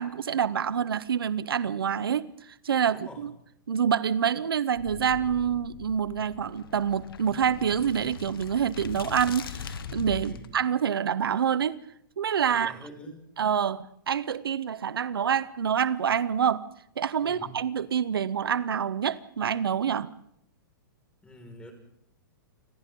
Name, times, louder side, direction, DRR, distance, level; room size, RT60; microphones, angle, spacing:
voice 1, 0.0-3.3 3.7-11.8 12.2-12.7 13.4-16.6 17.0-20.1, right 8 dB, 90° right, 0.9 m, -27 dB
voice 2, 2.9-3.3 10.2-10.5 12.5-13.2 17.2-17.6 21.2-21.7, left 1 dB, 10° left, 5.3 m, -46 dB
sound 1, 4.8-10.5, left 6 dB, 75° left, 1.6 m, -40 dB
29.0 x 26.0 x 3.8 m
hypercardioid pair, 135°, 12 cm